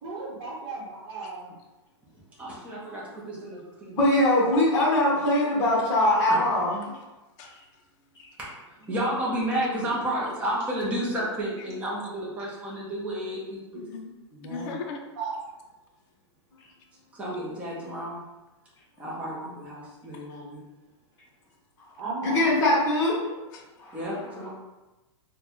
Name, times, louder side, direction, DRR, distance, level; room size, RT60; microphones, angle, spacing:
voice 1, 0.0-1.5 15.2-15.4 19.1-19.5 22.0-22.4 23.3-23.4, right 4 dB, 45° right, -6 dB, 1.0 m, -35 dB
voice 2, 2.4-4.0 6.2-6.4 8.4-8.5 8.9-13.6 14.3-14.7 17.1-18.2 19.0-20.6 23.9-24.5, right 1 dB, 10° right, -6 dB, 0.7 m, -31 dB
voice 3, 3.9-6.8 22.2-23.1 23.8-24.0 24.4-24.5, left 1 dB, 20° left, -6 dB, 1.0 m, -22 dB
voice 4, 13.7-14.2 14.4-15.0 20.1-20.4 23.5-23.7, left 4 dB, 40° left, 2 dB, 0.5 m, -38 dB
3.7 x 2.2 x 3.0 m, 1.1 s
hypercardioid pair, 155°, 16 cm